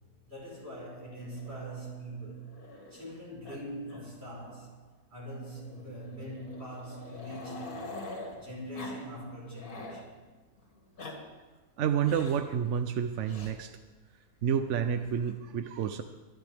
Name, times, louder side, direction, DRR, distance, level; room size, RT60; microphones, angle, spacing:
voice 1, 0.3-2.4 2.9-4.8 5.1-7.9 8.3-10.1, right 1 dB, 35° right, 5.1 m, -42 dB
Growling, 1.3-3.2 3.4-3.6 3.9-4.0 4.4-4.5 5.5-8.3 8.7-9.0 9.3-10.0 10.7-11.1 12.0-12.5 13.2-13.5 14.7-15.3, left 2 dB, 55° left, 2.8 m, -45 dB
voice 2, 11.8-13.7 14.4-16.0, right 8 dB, 65° right, 0.8 m, -29 dB
22.5 x 12.0 x 3.5 m
omnidirectional pair, 1.8 m